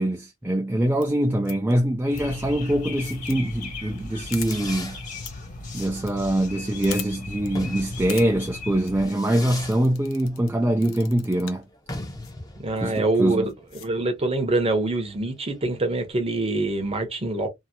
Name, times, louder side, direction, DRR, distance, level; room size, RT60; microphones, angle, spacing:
voice 1, 0.0-5.0 5.7-11.6 12.8-13.5, right 1 dB, 10° right, 0.3 m, -24 dB
sound 1, 0.9-1.0 1.4-1.7 2.1-2.2 2.8-3.4 3.6-3.7 3.9-4.0 4.3-4.6 5.2-5.3 5.6-6.1 6.4-6.5 6.8-7.1 7.4-7.5 7.9-8.3 8.7-8.9 9.6-10.5 10.8-11.6 12.2-12.3 12.9-13.0 13.5-13.9, left 10 dB, 65° left, 0.7 m, -39 dB
sound 2, 2.1-9.1, left 3 dB, 35° left, 1.6 m, -37 dB
Fireworks, 3.9-16.1, left 2 dB, 15° left, 0.8 m, -41 dB
voice 2, 12.6-13.5 13.8-17.5, right 2 dB, 25° right, 0.8 m, -24 dB
2.8 x 2.8 x 2.6 m
head